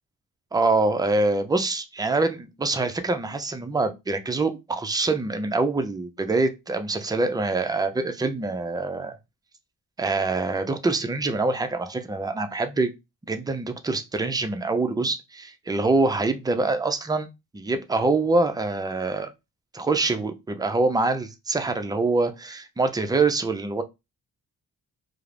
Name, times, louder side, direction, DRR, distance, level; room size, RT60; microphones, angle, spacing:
voice 1, 0.5-9.2 10.0-12.9 13.3-17.3 17.5-19.3 19.7-23.8, right 3 dB, 10° right, 0.4 m, -25 dB
2.3 x 2.1 x 3.2 m
cardioid pair, 60°, 38 cm